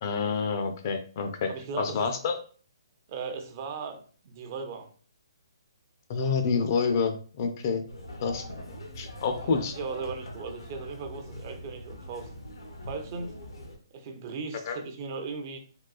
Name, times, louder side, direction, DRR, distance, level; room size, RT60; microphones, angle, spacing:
voice 1, 0.0-1.5 1.8-2.4 6.1-7.8 8.2-8.4 9.0-9.7 14.7-14.8, left 5 dB, 40° left, 6 dB, 0.5 m, -28 dB
voice 2, 1.5-2.2 3.1-4.9 9.4-12.3 12.8-13.4 13.9-15.6, right 4 dB, 40° right, 6 dB, 0.5 m, -37 dB
sound 1, 7.9-13.8, left 1 dB, 80° left, 0.8 m, -42 dB
3.7 x 2.3 x 2.3 m, 0.41 s
hypercardioid pair, 140°, 2 cm